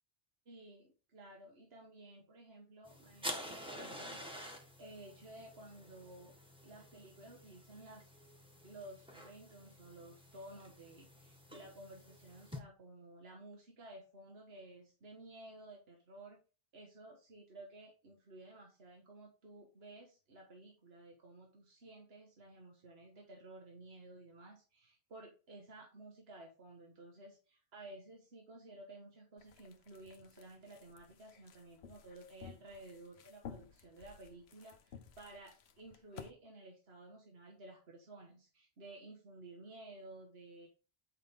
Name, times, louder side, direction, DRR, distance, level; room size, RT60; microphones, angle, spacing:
voice 1, 0.4-4.2 4.8-6.3 6.6-8.1 8.6-16.4 16.7-40.7, right 2 dB, 75° right, 0 dB, 1.6 m, -54 dB
sound 1, 2.8-12.6, equal, 5° right, 1.3 m, -49 dB
sound 2, 29.4-36.3, left 7 dB, 85° left, 1.0 m, -55 dB
9.3 x 5.2 x 3.6 m, 0.36 s
omnidirectional pair, 1.0 m